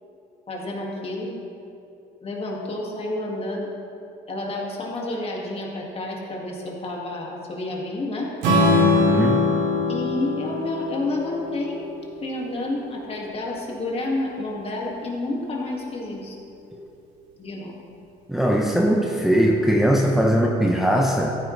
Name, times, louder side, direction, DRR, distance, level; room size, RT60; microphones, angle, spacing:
voice 1, 0.5-1.3 2.2-3.7 4.3-8.3 9.9-11.8 12.2-16.4 17.4-17.7, left 2 dB, 35° left, -2 dB, 2.2 m, -29 dB
Strum, 8.4-12.6, left 2 dB, 90° right, 2.7 m, -22 dB
voice 2, 8.8-9.5 16.7-16.9 18.3-21.4, equal, ahead, -1 dB, 0.8 m, -20 dB
14.5 x 9.2 x 3.3 m, 2.7 s
cardioid pair, 110°, 17 cm